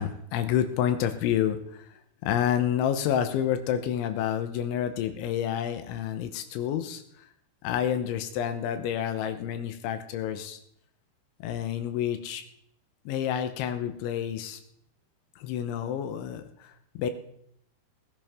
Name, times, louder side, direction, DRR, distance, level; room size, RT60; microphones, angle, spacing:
voice 1, 0.0-1.9 2.2-7.0 7.6-10.6 11.4-12.4 13.1-14.6 15.4-17.1, left 9 dB, 90° left, 8 dB, 3.4 m, -29 dB
19.5 x 10.5 x 3.7 m, 0.72 s
omnidirectional pair, 5.2 m